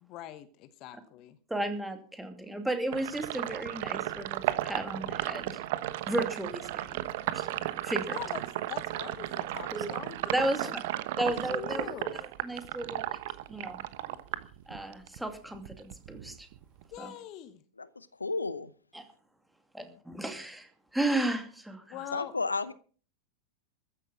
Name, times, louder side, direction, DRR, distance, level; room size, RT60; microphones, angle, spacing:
voice 1, 0.0-1.4 8.1-8.4 8.7-10.2 11.2-12.2 16.9-17.6 19.8-20.0 21.9-22.3, left 13 dB, 40° left, 14 dB, 1.0 m, -43 dB
voice 2, 1.5-5.6 6.1-8.2 9.7-9.9 10.2-10.8 11.2-13.2 13.5-13.8 14.7-16.5 17.0-17.1 18.9-19.1 19.7-22.0, right 1 dB, 5° right, 6 dB, 2.5 m, -34 dB
Sink (filling or washing), 2.9-15.2 15.5-17.0, right 14 dB, 50° right, 1.1 m, -34 dB
voice 3, 17.8-18.7 22.1-22.7, left 3 dB, 80° left, 17 dB, 0.7 m, -33 dB
14.5 x 10.5 x 5.9 m, 0.42 s
figure-of-eight pair, 90°, 0 cm